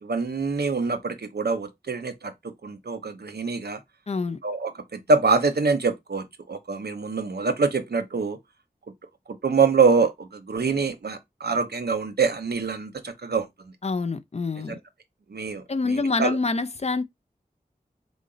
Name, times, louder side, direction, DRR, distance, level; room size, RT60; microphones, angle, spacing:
voice 1, 0.0-3.8 4.4-8.4 9.3-13.7 14.7-14.8 15.3-16.4, right 4 dB, 90° right, 0.6 m, -25 dB
voice 2, 4.1-4.4 13.8-14.8 15.7-17.0, left 3 dB, 40° left, 0.4 m, -26 dB
3.9 x 2.1 x 3.7 m
wide cardioid pair, 45°, 16 cm